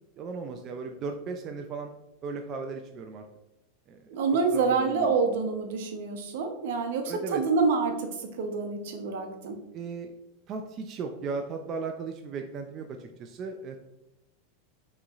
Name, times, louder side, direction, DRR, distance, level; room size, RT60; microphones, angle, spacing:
voice 1, 0.2-1.9 2.2-3.2 3.9-4.0 4.5-5.1 7.1-7.4 9.7-10.1 10.5-13.8, right 4 dB, 35° right, 4 dB, 0.4 m, -36 dB
voice 2, 4.1-9.6, right 4 dB, 70° right, 5 dB, 0.8 m, -27 dB
6.3 x 3.1 x 2.4 m, 0.89 s
supercardioid pair, 140°, 0 cm